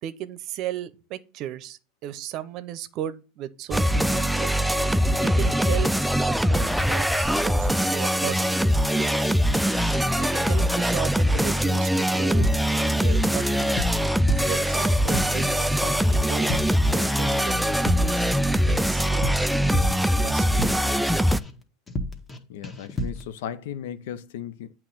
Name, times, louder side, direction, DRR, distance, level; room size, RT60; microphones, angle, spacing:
voice 1, 0.0-4.5 5.2-5.9 6.2-8.5 8.8-9.3 10.2-12.5 12.8-13.7 14.4-19.5 20.2-21.5, right 11 dB, 55° right, 0.7 m, -35 dB
sound 1, 3.7-21.4, equal, ahead, 0.3 m, -22 dB
sound 2, 12.4-13.3 13.6-15.5 15.8-16.1 16.4-16.9 17.2-21.0 21.3-21.6 21.9-22.4 22.6-23.3, left 1 dB, 20° left, 1.2 m, -32 dB
voice 2, 22.5-24.7, left 9 dB, 75° left, 0.5 m, -36 dB
8.3 x 3.0 x 6.0 m
hypercardioid pair, 100°, 0 cm